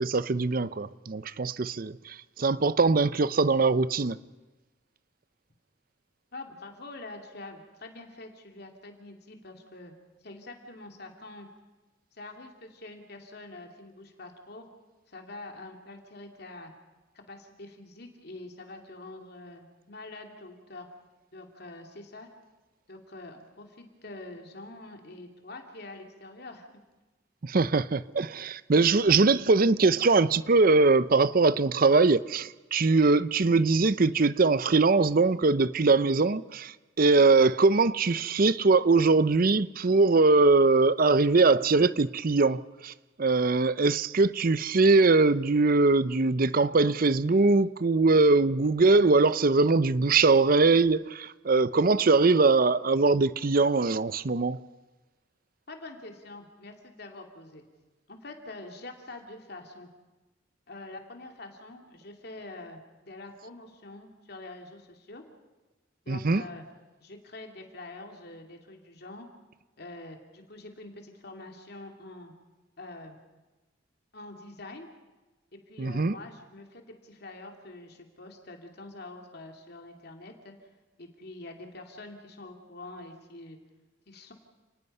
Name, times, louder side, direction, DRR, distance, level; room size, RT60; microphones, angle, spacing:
voice 1, 0.0-4.2 27.4-42.9 43.2-54.6 66.1-66.4 75.8-76.1, right 3 dB, 45° right, 0.6 m, -22 dB
voice 2, 6.3-9.9 10.2-11.5 12.1-14.7 15.1-16.7 17.1-20.9 21.3-22.3 22.9-26.7 55.7-57.6 58.1-59.9 60.7-62.8 63.1-65.2 66.0-66.6 67.0-69.3 69.8-72.3 72.8-73.2 74.1-74.9 75.5-80.7 81.0-83.6 84.1-84.3, left 2 dB, 55° left, 2.7 m, -45 dB
30.0 x 19.5 x 5.5 m
head